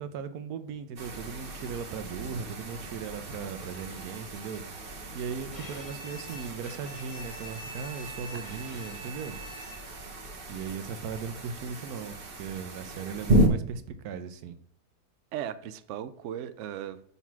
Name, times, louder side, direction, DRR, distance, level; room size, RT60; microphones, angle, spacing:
voice 1, 0.0-4.6 5.1-9.4 10.5-14.6, right 6 dB, 70° right, 1.1 m, -38 dB
sound 1, 1.0-13.5, right 1 dB, 40° right, 1.0 m, -33 dB
Bowed string instrument, 5.5-10.1, right 1 dB, 20° left, 1.1 m, -45 dB
voice 2, 8.3-8.7 15.3-17.0, right 10 dB, 85° right, 0.6 m, -37 dB
5.8 x 4.1 x 4.6 m
omnidirectional pair, 1.8 m